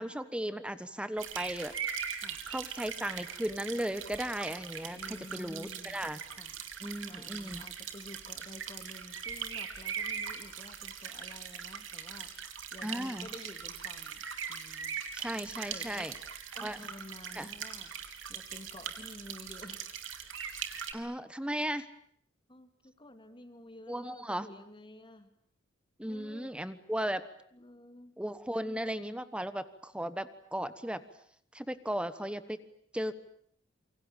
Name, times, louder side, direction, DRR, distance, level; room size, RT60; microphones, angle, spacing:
voice 1, 0.0-1.7 2.5-6.2 6.8-7.6 12.8-13.3 15.1-16.1 16.6-16.8 17.3-17.5 20.9-21.9 23.9-24.5 26.0-27.3 28.2-31.0 31.5-32.6 32.9-33.2, right 1 dB, 5° right, 13 dB, 1.2 m, -36 dB
sound 1, 1.2-20.9, right 7 dB, 80° right, 3.4 m, -41 dB
voice 2, 4.9-6.6 7.1-12.3 12.7-15.0 15.7-16.1 16.5-17.9 18.3-19.9 22.5-25.3 26.1-26.6 27.5-28.2, left 1 dB, 25° left, 9 dB, 2.8 m, -51 dB
27.5 x 24.5 x 8.9 m, 0.64 s
head